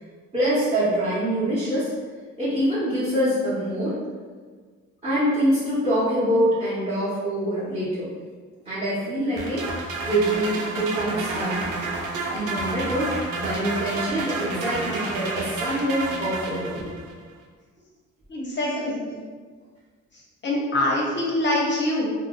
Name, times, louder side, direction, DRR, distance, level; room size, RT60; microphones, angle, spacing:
voice 1, 0.3-1.9 2.4-4.0 5.0-8.1 8.6-9.7 10.0-11.6 12.3-16.9 18.6-18.9, equal, 20° right, -11 dB, 0.9 m, -25 dB
sound 1, 9.4-17.1, right 3 dB, 85° right, 0.5 m, -30 dB
voice 2, 18.3-19.1 20.1-22.1, left 1 dB, 40° left, -3 dB, 0.5 m, -25 dB
2.5 x 2.0 x 3.7 m, 1.5 s
cardioid pair, 90°, 30 cm